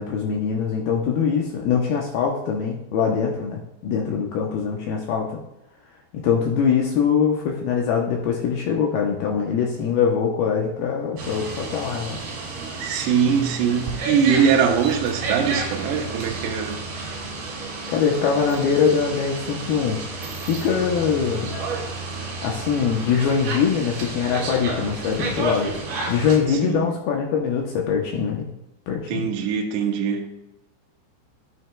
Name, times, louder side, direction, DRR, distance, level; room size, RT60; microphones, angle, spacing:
voice 1, 0.0-5.4 6.1-12.2 17.9-20.0 20.4-21.6 22.4-25.7 26.1-28.5 28.9-29.2, left 6 dB, 80° left, 2.2 m, -23 dB
sound 1, 11.2-26.4, right 3 dB, 60° right, 4.4 m, -31 dB
voice 2, 12.8-16.8 26.5-26.9 29.1-30.3, right 7 dB, 75° right, 2.7 m, -22 dB
12.5 x 8.9 x 2.3 m
omnidirectional pair, 5.4 m